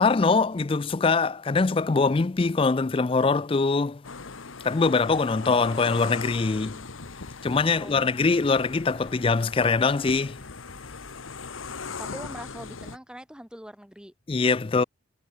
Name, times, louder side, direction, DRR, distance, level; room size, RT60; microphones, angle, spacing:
voice 1, 0.0-4.0 4.6-6.8 7.4-10.4 14.3-14.8, left 4 dB, 25° left, 0.4 m, -23 dB
sound 1, 4.0-13.0, left 4 dB, 90° left, 1.4 m, -39 dB
voice 2, 7.7-8.5 12.0-14.1, equal, 5° right, 1.5 m, -43 dB
head